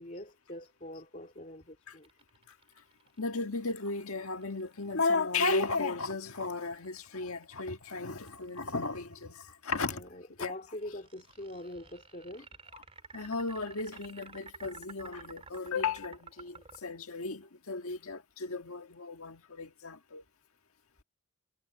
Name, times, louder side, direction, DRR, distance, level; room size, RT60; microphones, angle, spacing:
voice 1, 0.0-2.1 9.9-12.5, left 1 dB, 35° left, 2.3 m, -44 dB
sound 1, 2.0-9.2 10.8-16.8, right 5 dB, 25° right, 3.6 m, -52 dB
voice 2, 3.2-10.0 10.4-10.5 13.1-20.2, left 3 dB, 80° left, 1.6 m, -34 dB
head